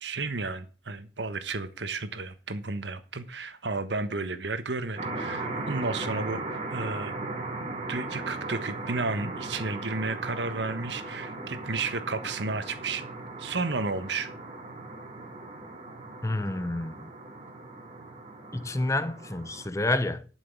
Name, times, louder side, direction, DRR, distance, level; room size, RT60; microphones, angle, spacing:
voice 1, 0.0-7.2 7.6-13.0 13.4-14.3, right 3 dB, 70° right, 1.3 m, -32 dB
sound 1, 5.0-19.7, right 2 dB, 35° right, 2.2 m, -38 dB
voice 2, 16.2-17.1 18.5-20.3, left 2 dB, 15° left, 0.8 m, -29 dB
11.5 x 6.2 x 6.1 m
head